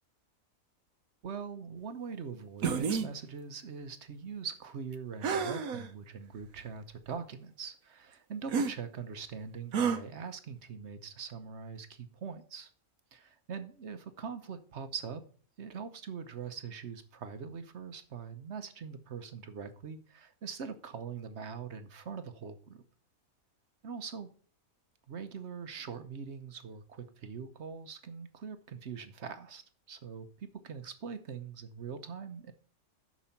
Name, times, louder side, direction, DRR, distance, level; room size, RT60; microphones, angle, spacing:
voice 1, 1.2-12.7 13.1-15.2 15.6-22.8 23.8-24.3 25.1-29.6 29.9-32.5, right 6 dB, 55° right, 10 dB, 1.1 m, -42 dB
sound 1, 2.6-3.1 5.2-5.9 6.6-6.7 8.5-8.7 9.7-10.0, right 6 dB, 85° right, 1.4 m, -30 dB
7.1 x 6.2 x 5.8 m, 0.44 s
omnidirectional pair, 1.5 m